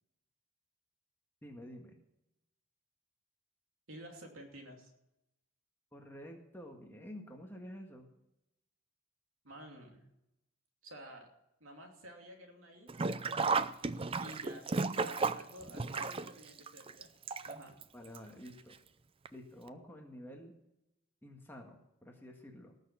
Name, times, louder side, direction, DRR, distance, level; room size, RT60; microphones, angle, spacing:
voice 1, 1.4-2.0 5.9-8.1 17.9-18.7 19.3-20.5 21.2-22.7, equal, 10° left, 1 dB, 1.7 m, -50 dB
voice 2, 3.9-4.9 9.4-10.0 10.8-11.3 11.6-13.2 14.2-17.1 17.4-17.8, right 1 dB, 70° right, 2 dB, 2.8 m, -51 dB
Sink (filling or washing), 12.9-17.8 18.1-18.2 19.3-19.4 19.7-19.8, right 4 dB, 25° right, 0.4 m, -34 dB
18.5 x 6.7 x 7.0 m, 0.87 s
head